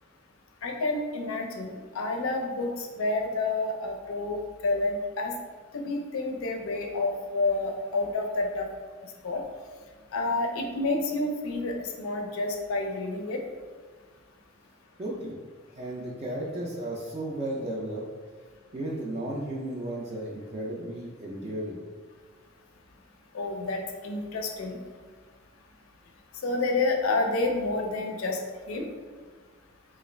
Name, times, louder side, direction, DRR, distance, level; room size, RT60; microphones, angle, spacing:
voice 1, 0.6-5.3 5.7-8.7 9.2-9.4 10.1-13.4 23.3-24.8 26.4-28.4 28.7-28.9, left 2 dB, 90° left, 3 dB, 0.5 m, -29 dB
voice 2, 15.0-15.4 15.7-18.0 18.7-21.8, right 1 dB, 30° right, -4 dB, 0.4 m, -34 dB
3.1 x 2.4 x 3.1 m, 1.5 s
head